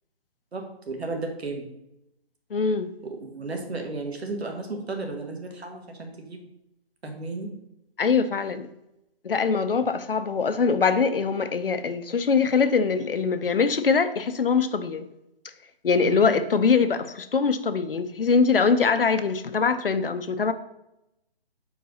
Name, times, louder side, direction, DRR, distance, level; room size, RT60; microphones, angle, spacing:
voice 1, 0.5-1.7 3.0-6.5 7.0-7.5 15.9-16.3, right 3 dB, 85° right, 1.6 m, -34 dB
voice 2, 2.5-2.9 8.0-8.7 9.2-15.1 15.8-20.5, left 5 dB, 60° left, 0.6 m, -23 dB
4.6 x 4.6 x 5.4 m
hypercardioid pair, 180°, 31 cm